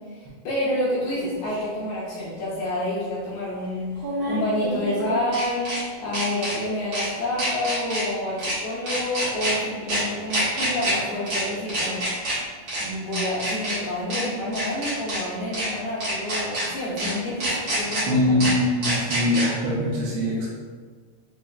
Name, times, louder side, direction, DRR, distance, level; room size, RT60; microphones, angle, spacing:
voice 1, 0.1-3.9 4.3-12.0 12.8-18.5, left 1 dB, 75° left, -9 dB, 2.1 m, -28 dB
sound 1, 1.5-1.6 4.0-5.8 6.1-6.5 6.9-7.1 7.4-8.0 8.4-8.5 8.9-9.5 9.9-10.0 10.3-10.9 11.3-11.4 11.7-12.3 12.7-12.8 13.1-13.7 14.1-14.2 14.5-15.2 15.5-15.7 16.0-16.6 17.0-17.1 17.4-18.0 18.4-18.5 18.8-19.4, right 1 dB, 60° right, 1.6 m, -27 dB
voice 2, 18.1-20.5, left 1 dB, 80° right, -7 dB, 2.3 m, -22 dB
6.2 x 2.1 x 2.4 m, 1.5 s
omnidirectional pair, 4.8 m